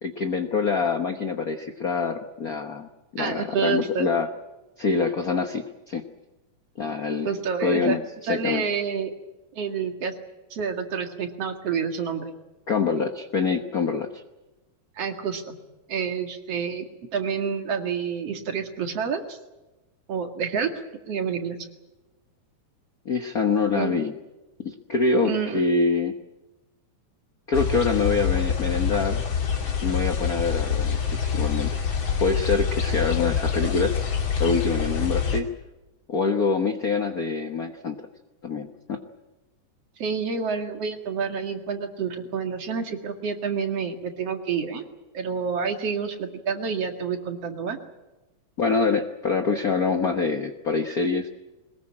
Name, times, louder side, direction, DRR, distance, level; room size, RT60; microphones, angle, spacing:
voice 1, 0.0-4.3 4.8-6.0 6.8-7.3 7.6-8.6 12.7-14.2 23.0-24.1 24.6-26.1 27.5-29.2 29.8-31.7 32.2-33.9 34.4-35.5 36.1-38.0 38.4-39.0 48.6-51.3, left 4 dB, 85° left, 6 dB, 0.8 m, -25 dB
voice 2, 3.2-4.1 7.2-8.0 8.3-9.1 9.5-10.1 10.5-12.3 15.0-15.6 15.9-16.8 17.1-19.4 20.1-20.7 21.1-21.6 23.7-24.0 25.2-25.6 40.0-44.8 45.1-47.8, right 6 dB, 55° right, 6 dB, 3.0 m, -28 dB
sound 1, 27.5-35.4, left 6 dB, 40° left, 2.9 m, -26 dB
22.0 x 21.0 x 8.7 m, 1.1 s
omnidirectional pair, 3.5 m